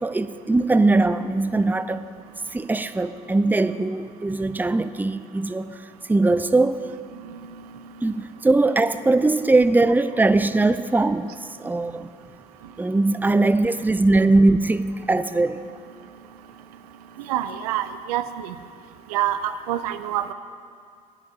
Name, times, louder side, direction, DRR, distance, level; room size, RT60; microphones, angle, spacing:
voice 1, 0.0-2.1 2.5-6.8 8.0-11.3 11.6-12.1 12.8-15.6, right 2 dB, 10° right, 12 dB, 0.6 m, -20 dB
voice 2, 17.2-18.5 19.1-20.3, right 11 dB, 80° right, 11 dB, 0.6 m, -27 dB
13.0 x 10.0 x 7.6 m, 2.2 s
hypercardioid pair, 60°, 20 cm